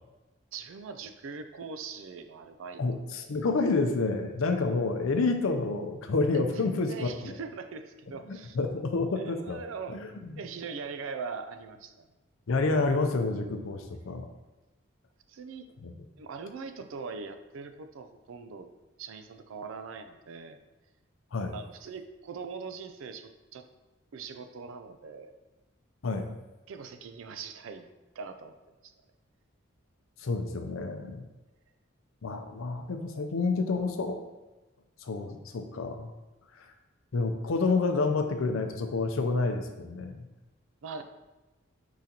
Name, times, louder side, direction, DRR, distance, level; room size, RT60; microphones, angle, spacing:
voice 1, 0.5-3.3 6.3-8.6 9.1-10.1 10.4-11.9 15.3-15.7 16.2-18.7 19.0-20.6 21.5-23.6 24.1-25.3 26.7-27.9 28.2-28.6 28.8-28.9 40.8-41.0, right 5 dB, 80° right, 8 dB, 0.4 m, -41 dB
voice 2, 2.8-7.4 8.3-9.6 9.9-10.4 12.5-14.3 15.8-15.9 21.3-21.5 26.0-26.3 30.2-31.2 32.2-34.2 35.0-36.1 36.6-36.7 37.1-40.3, left 3 dB, 80° left, 6 dB, 0.5 m, -29 dB
4.7 x 3.9 x 2.8 m, 1.1 s
head